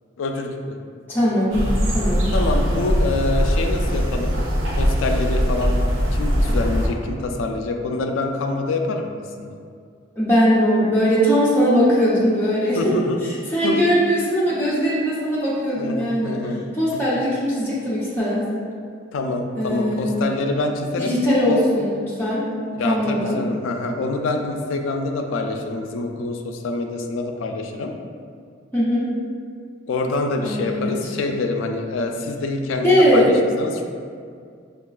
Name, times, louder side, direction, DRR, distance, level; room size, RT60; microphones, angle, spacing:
voice 1, 0.2-0.8 2.3-4.4 4.8-5.8 6.1-9.1 9.4-9.6 12.7-13.2 13.6-13.8 15.8-16.7 16.9-17.0 19.1-21.1 21.5-21.6 22.7-27.9 29.9-33.8, left 2 dB, 80° left, 3 dB, 0.3 m, -26 dB
voice 2, 1.1-1.7 1.9-2.2 10.2-12.9 13.2-16.4 16.7-18.5 19.6-20.2 21.0-22.5 22.8-23.4 28.7-29.1 30.4-30.9 32.8-33.3, equal, 10° left, -9 dB, 0.6 m, -20 dB
sound 1, 1.5-6.9, equal, 90° right, 0.6 m, -21 dB
5.1 x 2.3 x 2.3 m, 2.2 s
head